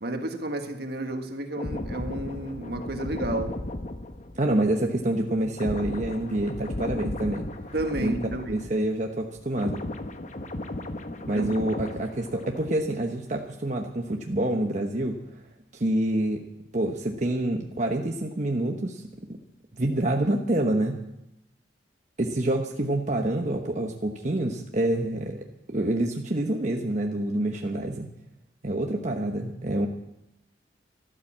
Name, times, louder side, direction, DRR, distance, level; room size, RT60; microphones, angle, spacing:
voice 1, 0.0-3.6 7.7-8.7 11.3-11.5, right 1 dB, 60° right, 1.6 m, -31 dB
sound 1, 1.6-9.1 9.3-13.0 13.3-13.6, left 1 dB, 40° left, 1.0 m, -35 dB
voice 2, 4.4-7.5 8.0-8.1 8.5-9.8 11.2-15.2 15.7-16.4 16.7-19.0 19.3-19.4 19.8-21.0 22.2-28.1 28.6-29.9, right 1 dB, 40° right, 1.1 m, -27 dB
13.0 x 12.5 x 7.4 m
head